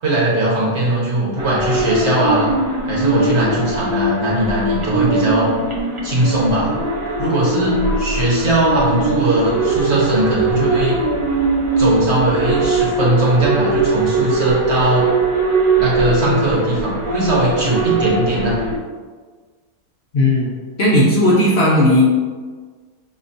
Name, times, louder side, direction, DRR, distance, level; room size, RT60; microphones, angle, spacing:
voice 1, 0.0-2.5 2.9-5.5 6.0-6.8 7.2-11.0 11.8-15.1 15.7-18.6, right 2 dB, 50° right, -6 dB, 1.3 m, -19 dB
sound 1, 1.4-18.8, right 2 dB, 35° right, 0.5 m, -20 dB
voice 2, 20.1-20.5 20.8-22.0, left 1 dB, 50° left, -6 dB, 0.9 m, -14 dB
5.6 x 3.0 x 2.6 m, 1.5 s
omnidirectional pair, 1.5 m